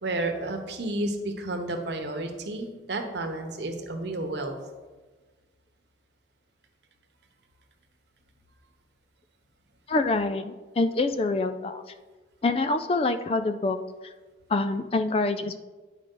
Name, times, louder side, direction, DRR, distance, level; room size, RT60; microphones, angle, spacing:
voice 1, 0.0-4.5, right 2 dB, 75° right, 4 dB, 1.0 m, -31 dB
voice 2, 9.9-11.8 12.4-13.8 14.5-15.6, left 3 dB, 30° left, 10 dB, 0.3 m, -26 dB
9.1 x 4.8 x 3.8 m, 1.3 s
head